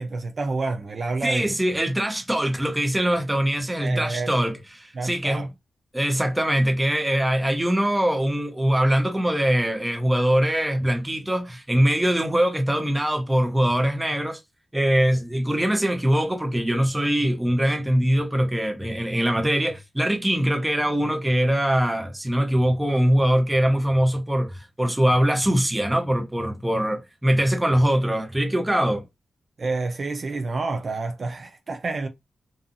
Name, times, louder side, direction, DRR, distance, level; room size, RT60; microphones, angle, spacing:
voice 1, 0.0-1.5 3.8-4.3 4.9-5.5 29.6-32.1, right 3 dB, 50° right, 0.4 m, -28 dB
voice 2, 1.2-5.5 5.9-14.4 14.7-29.0, equal, 10° right, 0.7 m, -22 dB
2.6 x 2.3 x 2.6 m
cardioid pair, 75°, 0 cm